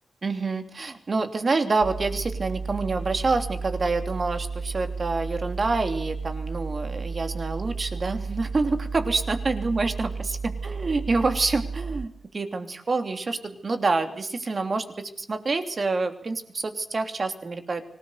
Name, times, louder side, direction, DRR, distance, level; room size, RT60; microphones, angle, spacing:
voice 1, 0.2-10.4 10.6-17.9, right 3 dB, 35° right, 7 dB, 3.1 m, -27 dB
sound 1, 1.8-12.1, right 4 dB, 85° right, 2.3 m, -33 dB
25.0 x 18.5 x 8.1 m, 0.63 s
wide cardioid pair, 175°, 0 cm